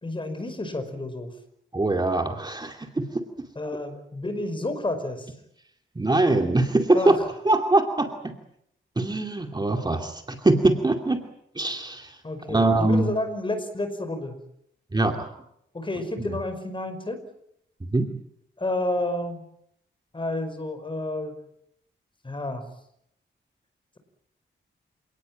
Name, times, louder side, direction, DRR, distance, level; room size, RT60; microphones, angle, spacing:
voice 1, 0.0-1.3 3.6-5.3 6.9-7.3 12.2-14.4 15.7-17.2 18.6-19.4 20.1-21.4 22.2-22.7, left 2 dB, 25° left, 9 dB, 5.2 m, -30 dB
voice 2, 1.7-3.1 6.0-7.2 7.4-8.3 9.0-11.2 11.6-12.1 12.5-13.1 14.9-15.3 16.2-16.3 17.9-18.1, right 2 dB, 20° right, 4 dB, 2.5 m, -22 dB
28.0 x 18.5 x 9.1 m, 0.75 s
wide cardioid pair, 135°, 20 cm